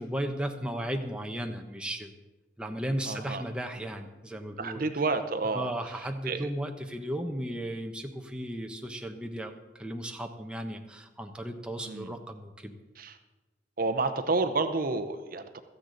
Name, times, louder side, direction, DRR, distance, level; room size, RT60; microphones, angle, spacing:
voice 1, 0.0-2.1 2.6-4.8 5.5-12.7, right 1 dB, 5° right, 3 dB, 0.9 m, -35 dB
voice 2, 3.1-3.4 4.6-6.5 11.9-12.1 13.0-13.2 13.8-15.6, right 3 dB, 50° right, 9 dB, 0.8 m, -30 dB
16.0 x 13.5 x 4.0 m, 1.1 s
head